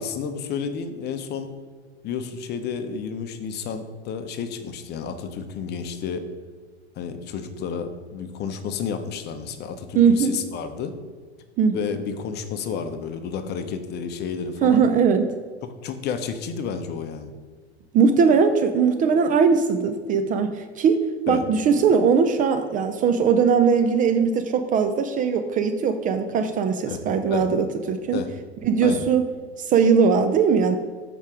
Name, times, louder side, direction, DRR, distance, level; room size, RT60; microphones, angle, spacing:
voice 1, 0.0-1.5 2.0-6.3 7.0-10.9 11.7-14.8 15.6-17.3 21.3-21.4 26.9-27.0 27.3-27.5 28.1-28.3 28.8-29.1, left 6 dB, 30° left, 9 dB, 0.8 m, -31 dB
voice 2, 9.9-10.3 11.6-11.8 14.6-15.3 17.9-28.2 28.6-29.2 29.6-30.8, right 6 dB, 25° right, 8 dB, 0.5 m, -20 dB
7.4 x 4.9 x 4.8 m, 1.5 s
hypercardioid pair, 100°, 33 cm